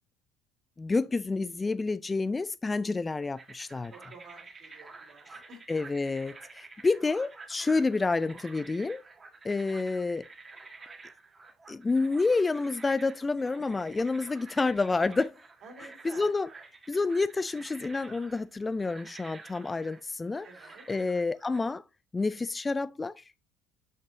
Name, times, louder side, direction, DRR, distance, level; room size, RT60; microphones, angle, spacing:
voice 1, 0.8-3.9 5.3-5.4 5.7-9.0 9.4-10.3 11.7-15.3 16.0-16.5 16.9-20.5 20.9-21.8 22.1-23.2, left 3 dB, 20° left, 0.4 m, -29 dB
sound 1, 3.3-21.6, right 4 dB, 25° right, 1.6 m, -50 dB
voice 2, 3.9-5.6 13.5-13.6 15.6-16.3 20.4-20.9, right 3 dB, 50° right, 3.2 m, -51 dB
7.3 x 6.5 x 2.7 m
figure-of-eight pair, 60°, 0 cm